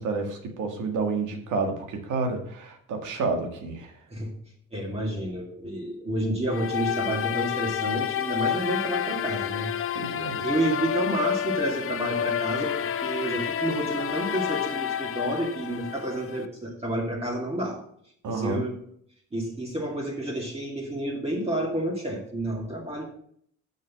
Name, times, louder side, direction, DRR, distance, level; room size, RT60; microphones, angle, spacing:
voice 1, 0.0-3.9 9.9-10.4 18.2-18.6, right 3 dB, 80° right, 4 dB, 2.0 m, -29 dB
voice 2, 4.7-10.0 10.4-17.8 18.3-18.7 19.3-23.0, right 1 dB, 20° right, -2 dB, 2.4 m, -30 dB
sound 1, 6.5-16.5, left 9 dB, 45° left, 0.7 m, -29 dB
6.4 x 6.3 x 7.4 m, 0.64 s
cardioid pair, 90°, 30 cm